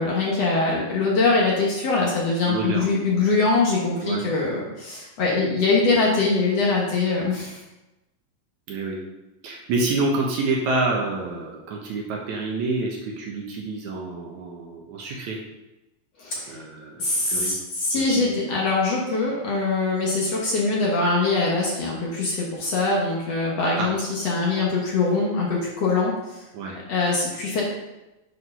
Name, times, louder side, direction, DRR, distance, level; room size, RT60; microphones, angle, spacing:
voice 1, 0.0-7.6 16.2-16.5 17.0-26.1 26.9-27.6, left 3 dB, 60° left, -3 dB, 2.0 m, -23 dB
voice 2, 2.5-2.9 4.0-4.3 8.7-9.0 9.4-15.4 16.5-17.5 18.0-18.2 23.7-23.9 26.5-26.8, right 3 dB, 70° right, -1 dB, 2.1 m, -28 dB
8.1 x 4.7 x 5.5 m, 1.0 s
omnidirectional pair, 4.0 m